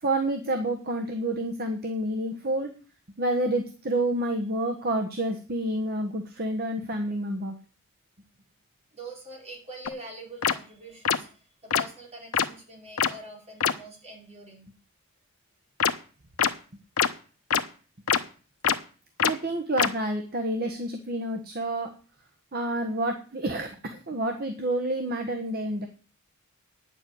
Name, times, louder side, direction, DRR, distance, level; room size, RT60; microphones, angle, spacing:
voice 1, 0.0-2.7 3.2-7.5 19.2-21.9 22.5-25.9, right 1 dB, 45° right, 4 dB, 1.4 m, -29 dB
voice 2, 8.9-14.7 16.7-16.8, right 1 dB, 30° right, -1 dB, 5.0 m, -44 dB
sound 1, 9.9-10.0 10.4-10.5 11.0-11.2 11.7-11.8 12.3-12.4 13.0-13.1 13.6-13.7 15.8-15.9 16.4-16.5 17.0-17.1 17.5-17.6 18.1-18.2 18.6-18.7 19.2-19.3 19.8-19.9, left 7 dB, 85° left, 1.0 m, -22 dB
9.9 x 7.4 x 8.8 m, 0.38 s
head